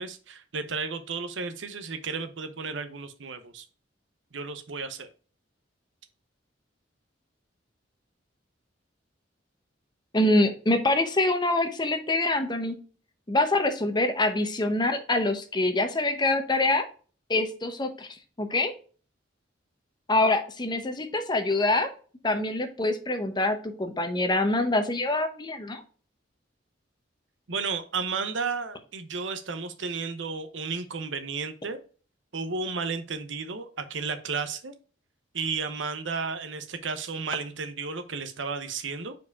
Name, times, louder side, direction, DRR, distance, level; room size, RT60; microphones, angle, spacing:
voice 1, 0.0-3.6 4.3-5.1 27.5-31.8 32.3-34.7 35.3-39.1, right 4 dB, 75° right, 10 dB, 0.8 m, -33 dB
voice 2, 10.1-12.7 13.3-16.9 17.3-18.1 18.4-18.7 20.1-21.9 22.2-25.8, left 2 dB, 25° left, 7 dB, 0.8 m, -25 dB
4.8 x 4.7 x 4.7 m, 0.39 s
head